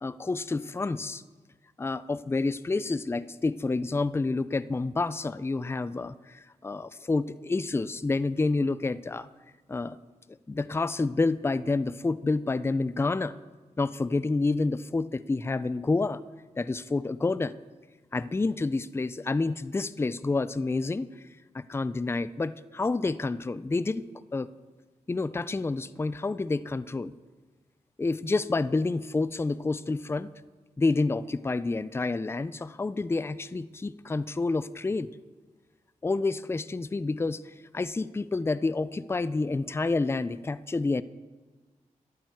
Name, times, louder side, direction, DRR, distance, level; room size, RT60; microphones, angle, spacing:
voice 1, 0.0-1.2 1.8-9.3 9.7-10.0 10.5-13.3 13.8-16.2 16.6-17.5 18.1-21.1 21.5-24.5 25.1-27.1 28.0-30.3 30.8-35.1 36.0-41.0, left 3 dB, 20° left, 17 dB, 0.4 m, -29 dB
12.5 x 11.0 x 4.7 m, 1.3 s
cardioid pair, 65°, 14 cm